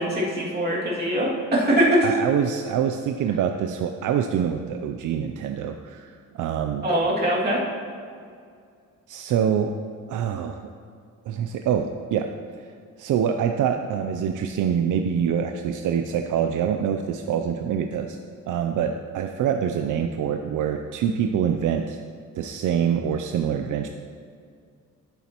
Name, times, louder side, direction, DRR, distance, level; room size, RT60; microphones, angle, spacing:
voice 1, 0.0-2.0 6.8-7.6, right 1 dB, 30° right, -6 dB, 2.3 m, -22 dB
voice 2, 2.0-6.9 9.1-9.7 10.1-10.6 11.3-12.3 12.6-12.7 13.0-18.2 18.5-22.0 22.4-23.9, right 8 dB, 70° right, 5 dB, 0.5 m, -25 dB
13.0 x 7.2 x 3.0 m, 2.2 s
cardioid pair, 140°, 32 cm